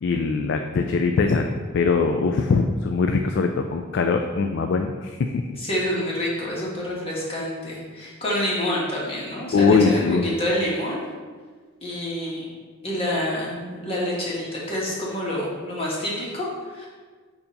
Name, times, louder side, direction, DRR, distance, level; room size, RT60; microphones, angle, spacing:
voice 1, 0.0-5.3 9.5-10.3, left 4 dB, 50° left, 5 dB, 0.3 m, -21 dB
voice 2, 5.6-11.0 11.8-12.5 12.8-16.9, left 1 dB, 25° left, -6 dB, 1.4 m, -27 dB
6.8 x 2.8 x 5.2 m, 1.5 s
head